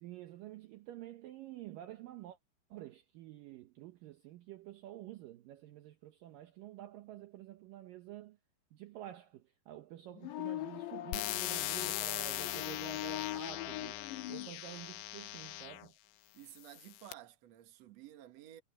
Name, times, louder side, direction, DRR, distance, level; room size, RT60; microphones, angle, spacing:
voice 1, 0.0-2.4 2.7-8.4 8.7-14.0 14.3-15.9, right 13 dB, 80° right, 2.0 m, -49 dB
sound 1, 10.1-14.5, left 15 dB, 75° left, 3.4 m, -42 dB
sound 2, 11.1-15.9 16.6-17.1, left 16 dB, 90° left, 3.4 m, -40 dB
voice 2, 16.3-18.6, right 13 dB, 60° right, 1.9 m, -53 dB
omnidirectional pair, 5.2 m